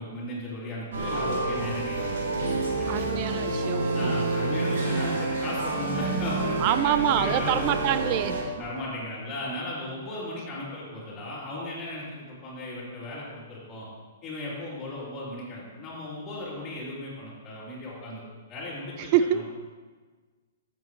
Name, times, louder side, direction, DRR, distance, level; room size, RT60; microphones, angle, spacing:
voice 1, 0.0-2.4 2.8-3.2 3.9-7.8 8.6-13.9 14.2-18.2 18.5-19.4, left 1 dB, 25° left, -7 dB, 3.4 m, -36 dB
sound 1, 0.9-8.4, right 2 dB, 75° right, 2.2 m, -28 dB
voice 2, 2.9-4.1 6.6-8.6 19.1-19.4, right 11 dB, 35° right, 11 dB, 0.4 m, -26 dB
13.5 x 7.7 x 3.2 m, 1.4 s
hypercardioid pair, 155°, 0 cm